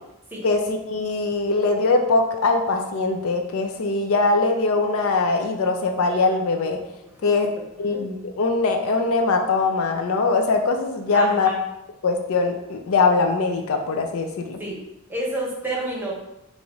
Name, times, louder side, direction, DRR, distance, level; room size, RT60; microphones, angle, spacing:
voice 1, 0.4-6.8 7.2-7.5 7.8-11.5 12.0-14.6, left 3 dB, 70° left, 4 dB, 0.5 m, -22 dB
voice 2, 11.1-11.6 14.6-14.8 15.1-16.1, right 1 dB, 10° right, -3 dB, 0.9 m, -29 dB
4.8 x 2.6 x 3.0 m, 0.89 s
head